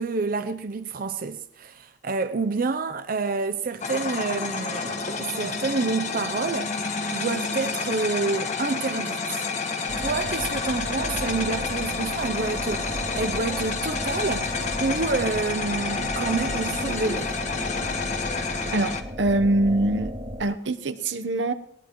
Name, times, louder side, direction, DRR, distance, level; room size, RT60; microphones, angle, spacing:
voice 1, 0.0-6.8 7.1-9.5 10.0-14.5 14.8-17.4, right 4 dB, 50° right, 0.6 m, -28 dB
sound 1, 3.8-19.0, left 4 dB, 40° left, 1.3 m, -29 dB
sound 2, 9.9-20.4, equal, 20° right, 1.8 m, -35 dB
voice 2, 18.7-20.1 20.4-21.5, right 1 dB, 80° right, 0.9 m, -24 dB
20.0 x 18.5 x 3.1 m
head